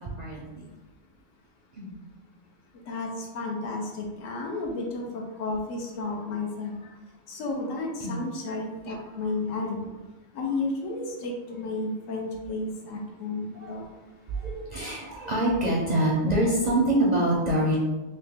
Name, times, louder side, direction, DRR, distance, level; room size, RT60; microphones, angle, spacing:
voice 1, 0.0-0.6 1.7-1.9 8.0-8.2 9.1-9.2 13.5-13.8 14.4-17.8, right 1 dB, 50° right, -4 dB, 0.5 m, -25 dB
voice 2, 2.9-6.7 7.3-9.9 10.3-13.8, left 3 dB, 80° left, 0 dB, 1.1 m, -32 dB
3.1 x 2.7 x 3.5 m, 1.2 s
omnidirectional pair, 1.3 m